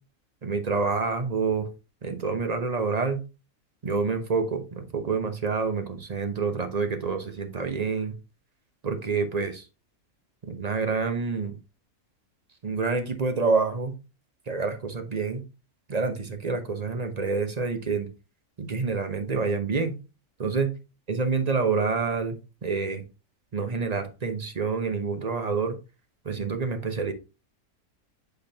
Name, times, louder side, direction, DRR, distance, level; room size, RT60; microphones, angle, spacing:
voice 1, 0.4-1.7 2.0-3.2 3.8-8.1 8.8-9.7 10.5-11.5 12.6-13.9 14.5-15.4 15.9-18.1 18.6-19.9 20.4-20.7 21.1-22.4 22.6-23.0 23.5-25.8 26.2-27.1, right 4 dB, 35° right, 7 dB, 0.8 m, -27 dB
10.0 x 4.0 x 2.8 m, 0.30 s
omnidirectional pair, 1.5 m